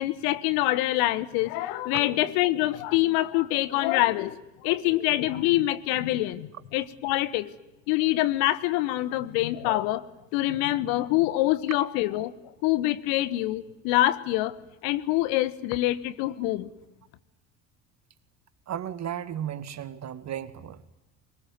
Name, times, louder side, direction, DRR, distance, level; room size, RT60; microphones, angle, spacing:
voice 1, 0.0-7.5 7.9-10.1 10.3-12.3 12.6-14.5 14.8-16.7, left 16 dB, 65° left, 15 dB, 1.5 m, -25 dB
voice 2, 18.7-20.9, right 10 dB, 45° right, 13 dB, 2.2 m, -35 dB
24.0 x 22.0 x 9.5 m, 0.96 s
hypercardioid pair, 65°, 39 cm